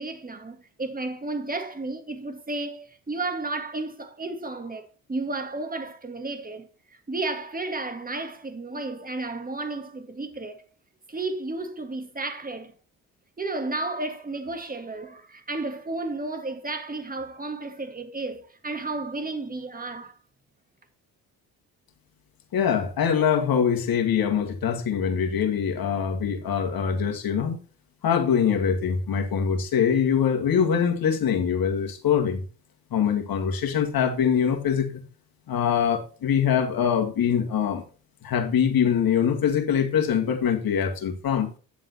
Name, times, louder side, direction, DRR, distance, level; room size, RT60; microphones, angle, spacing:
voice 1, 0.0-6.7 7.1-10.7 11.1-12.7 13.4-20.1, right 2 dB, 20° right, 2.0 m, -32 dB
voice 2, 22.5-27.6 28.0-32.4 32.9-35.0 35.5-37.8 38.2-41.5, left 7 dB, 60° left, 2.1 m, -23 dB
10.0 x 7.5 x 3.0 m
supercardioid pair, 60°, 40 cm